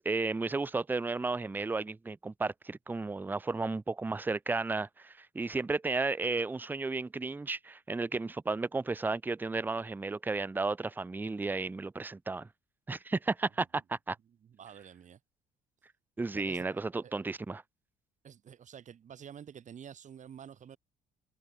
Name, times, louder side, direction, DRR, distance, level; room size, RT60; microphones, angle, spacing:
voice 1, 0.0-12.5 12.9-14.2 16.2-17.6, right 3 dB, 10° right, 0.6 m, -33 dB
voice 2, 14.4-15.2 16.3-17.3 18.2-20.8, right 8 dB, 45° right, 6.0 m, -50 dB
cardioid pair, 110°, 17 cm